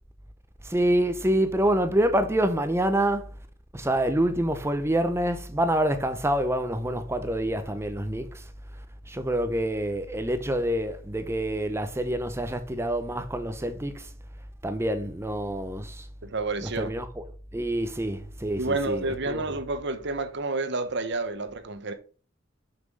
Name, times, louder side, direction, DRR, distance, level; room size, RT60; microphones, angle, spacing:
voice 1, 0.7-3.3 3.7-8.4 9.1-14.0 14.6-16.0 16.6-17.2 17.5-19.4, right 1 dB, 15° right, 0.7 m, -26 dB
voice 2, 16.2-16.9 18.6-21.9, right 3 dB, 60° right, 1.1 m, -29 dB
6.3 x 5.9 x 5.4 m
head